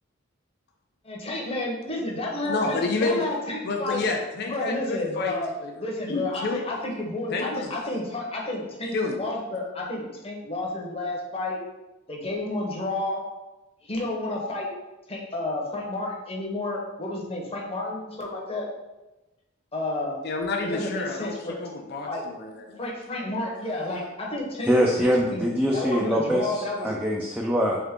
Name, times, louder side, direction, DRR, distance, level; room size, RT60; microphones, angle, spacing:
voice 1, 1.0-4.0 4.4-5.5 5.8-11.6 12.1-13.2 13.8-14.7 15.1-18.7 19.7-20.2 20.6-21.6 22.1-22.2 22.8-24.7 25.2-25.5 25.7-26.9, left 2 dB, 30° left, -2 dB, 0.9 m, -31 dB
voice 2, 2.4-3.3 3.7-5.7 6.1-6.6 7.3-7.7 8.9-9.2 20.2-22.8, left 3 dB, 55° left, 2 dB, 0.5 m, -29 dB
voice 3, 24.6-27.8, equal, 5° right, -3 dB, 0.4 m, -23 dB
3.6 x 3.6 x 3.6 m, 1.0 s
head